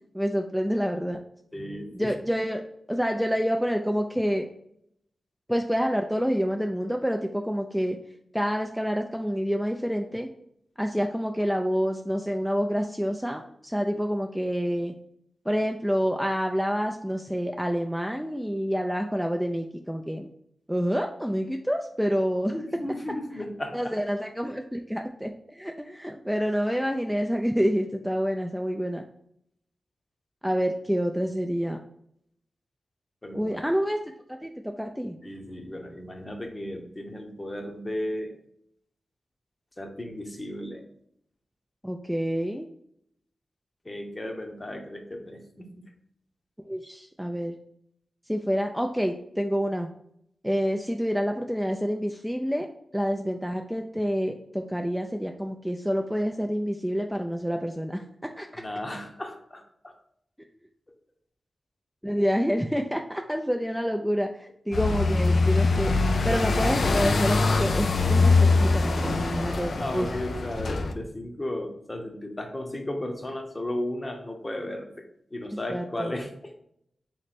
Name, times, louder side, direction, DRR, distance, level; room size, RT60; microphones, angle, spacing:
voice 1, 0.1-1.2 1.9-2.6 2.9-4.5 5.5-8.0 8.3-10.3 10.8-14.9 15.5-20.3 20.7-22.5 23.7-29.1 30.4-31.8 33.3-34.0 34.3-34.5 34.8-35.2 41.8-42.7 46.7-47.6 48.3-49.9 50.4-52.7 52.9-58.0 58.4-58.6 62.0-70.1 75.4-76.1, equal, ahead, 3 dB, 0.3 m, -28 dB
voice 2, 1.5-2.1 22.5-23.9 24.4-24.6 33.2-33.6 35.2-38.3 39.8-40.8 43.8-45.8 58.5-60.0 68.8-69.1 69.8-74.9 75.3-76.5, left 1 dB, 30° left, 4 dB, 0.8 m, -35 dB
sound 1, 64.7-70.9, left 3 dB, 70° left, 0.4 m, -23 dB
3.2 x 3.1 x 4.1 m, 0.71 s
cardioid pair, 50°, 0 cm